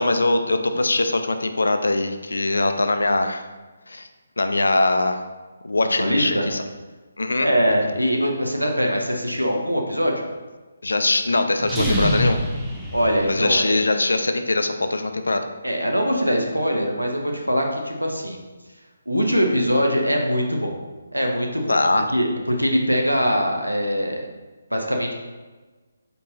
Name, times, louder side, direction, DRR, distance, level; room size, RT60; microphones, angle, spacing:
voice 1, 0.0-3.5 3.9-4.1 4.4-5.2 5.6-6.6 7.2-7.5 10.8-12.4 13.3-15.4 21.7-22.1, left 2 dB, 65° left, 7 dB, 0.3 m, -22 dB
voice 2, 6.0-6.5 7.4-10.1 12.9-13.7 15.6-18.4 19.1-20.7 21.1-24.3 24.7-25.1, equal, 85° right, 1 dB, 0.7 m, -22 dB
sound 1, 11.6-13.7, equal, 10° right, 0.5 m, -25 dB
4.2 x 3.4 x 2.7 m, 1.3 s
figure-of-eight pair, 145°, 0 cm